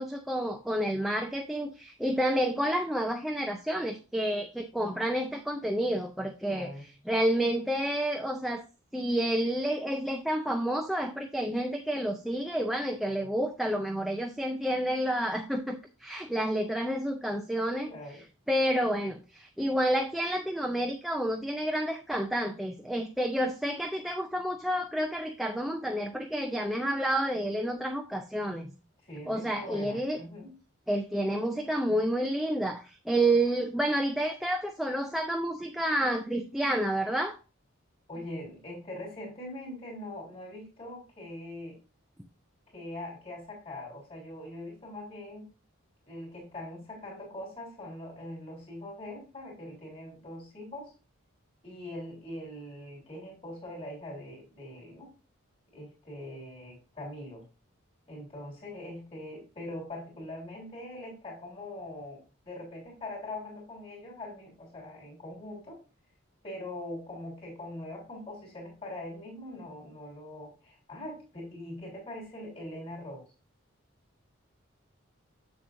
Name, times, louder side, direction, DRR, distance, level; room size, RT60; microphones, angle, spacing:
voice 1, 0.0-8.6 8.9-18.2 18.5-28.7 29.3-30.2 30.9-37.4, right 1 dB, ahead, 3 dB, 0.4 m, -29 dB
voice 2, 6.5-6.8 17.8-18.2 29.0-30.5 38.1-41.8 42.7-45.5 46.1-50.9 51.6-55.1 55.7-57.4 58.1-65.8 66.4-73.2, left 1 dB, 25° left, -3 dB, 3.3 m, -42 dB
7.4 x 7.2 x 2.6 m, 0.32 s
head